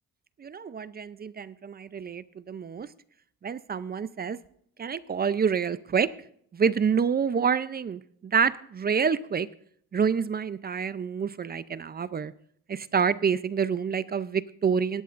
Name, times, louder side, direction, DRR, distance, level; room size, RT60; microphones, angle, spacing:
voice 1, 0.4-2.9 3.4-4.4 4.8-6.1 6.5-9.5 9.9-12.3 12.7-15.0, right 6 dB, 30° right, 16 dB, 0.5 m, -27 dB
18.0 x 13.5 x 2.5 m, 0.64 s
cardioid pair, 90°, 30 cm